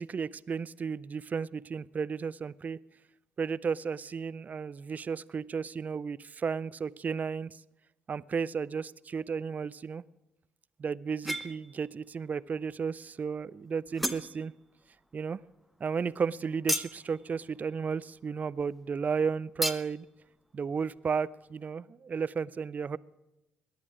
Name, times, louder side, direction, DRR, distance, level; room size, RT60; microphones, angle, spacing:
voice 1, 0.0-2.8 3.4-7.6 8.1-10.0 10.8-14.5 15.1-15.4 15.8-20.1 20.5-23.0, right 6 dB, 40° right, 20 dB, 0.4 m, -33 dB
sound 1, 11.2-11.9 12.3-12.9 13.3-13.4 13.7-14.8 15.1-18.8 19.1-19.2 19.6-20.0, equal, ahead, 0.9 m, -36 dB
18.0 x 11.0 x 5.0 m, 0.96 s
hypercardioid pair, 50°, 4 cm